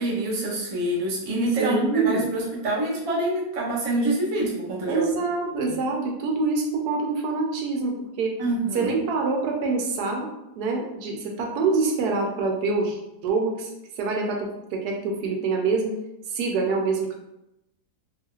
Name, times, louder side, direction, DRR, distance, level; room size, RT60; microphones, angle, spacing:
voice 1, 0.0-5.1 5.7-5.8 8.4-9.0, right 1 dB, 40° right, -5 dB, 0.4 m, -26 dB
voice 2, 1.6-2.3 4.9-8.4 8.7-10.3 10.6-15.9 16.3-17.1, right 4 dB, 85° right, 1 dB, 1.1 m, -25 dB
3.0 x 2.4 x 2.9 m, 0.89 s
omnidirectional pair, 1.7 m